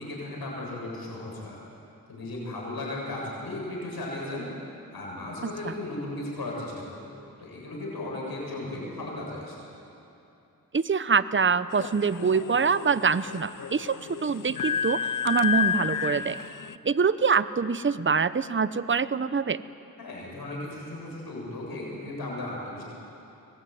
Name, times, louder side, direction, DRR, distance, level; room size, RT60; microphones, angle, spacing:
voice 1, 0.0-1.6 2.1-4.5 4.9-7.1 7.4-9.6 20.0-22.8, left 2 dB, 90° left, -3 dB, 7.6 m, -36 dB
voice 2, 10.7-15.0 15.2-16.4 16.8-19.6, right 5 dB, 35° right, 15 dB, 0.8 m, -25 dB
sound 1, 11.7-16.8, left 8 dB, 60° left, 0.7 m, -31 dB
25.0 x 20.0 x 9.4 m, 2.8 s
cardioid pair, 50°, 36 cm